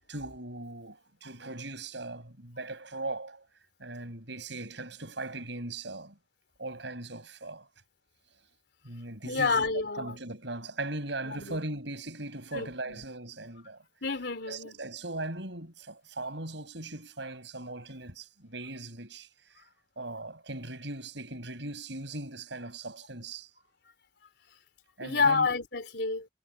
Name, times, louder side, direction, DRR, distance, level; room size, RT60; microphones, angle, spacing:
voice 1, 0.0-3.5 3.8-6.2 6.6-7.7 8.8-9.6 10.0-13.8 14.5-19.7 20.0-23.5 25.0-25.5, right 2 dB, 70° right, 7.0 m, -39 dB
voice 2, 9.2-10.2 11.2-11.6 12.5-13.0 14.0-14.8 25.0-26.3, left 4 dB, 60° left, 4.1 m, -29 dB
head